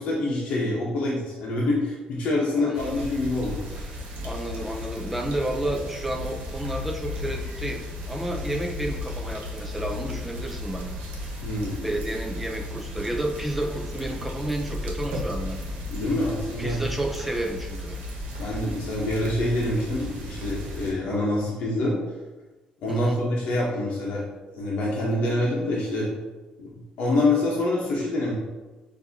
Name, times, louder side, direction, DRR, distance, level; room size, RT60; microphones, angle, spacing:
voice 1, 0.0-3.6 11.4-11.8 15.9-16.8 18.4-21.9 22.8-24.3 24.5-26.1 26.6-26.7 27.0-28.3, left 2 dB, 60° left, -5 dB, 0.9 m, -26 dB
voice 2, 2.6-3.0 3.8-3.9 4.2-10.8 11.8-15.6 16.6-18.0 22.9-23.2, right 1 dB, 5° right, 2 dB, 0.5 m, -31 dB
sound 1, 2.7-20.9, left 1 dB, 85° right, 1.1 m, -34 dB
6.5 x 2.7 x 2.8 m, 1.2 s
cardioid pair, 175°, 3 cm